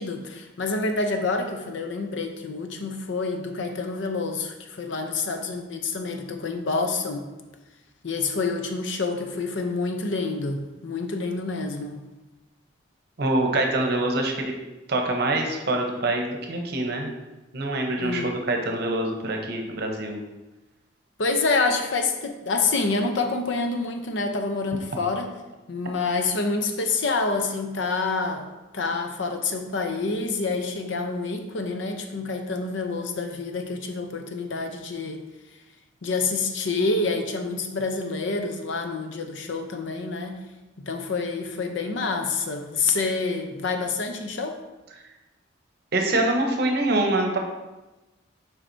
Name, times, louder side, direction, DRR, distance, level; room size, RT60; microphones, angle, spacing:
voice 1, 0.0-7.3 8.0-12.0 18.0-18.3 21.2-25.3 25.7-28.5 28.7-35.2 36.0-40.4 40.8-44.6, left 3 dB, 70° left, 5 dB, 0.6 m, -27 dB
voice 2, 13.2-14.5 14.9-17.1 17.5-20.2 45.9-47.4, right 2 dB, 55° right, 2 dB, 0.8 m, -25 dB
7.4 x 4.8 x 2.7 m, 1.1 s
head